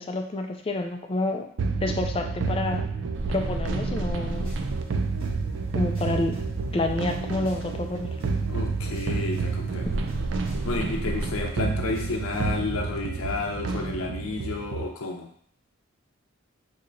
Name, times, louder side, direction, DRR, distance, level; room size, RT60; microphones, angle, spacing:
voice 1, 0.0-1.5 1.8-2.9 3.3-4.5 5.7-6.4 6.7-8.1, left 2 dB, 25° left, 4 dB, 0.3 m, -29 dB
sound 1, 1.6-14.9, right 4 dB, 60° right, 0.4 m, -29 dB
sound 2, 4.3-12.7, equal, 30° right, 1.6 m, -47 dB
voice 2, 8.5-9.9 10.6-15.3, left 3 dB, 90° left, 2 dB, 0.6 m, -31 dB
4.3 x 2.7 x 2.5 m, 0.62 s
head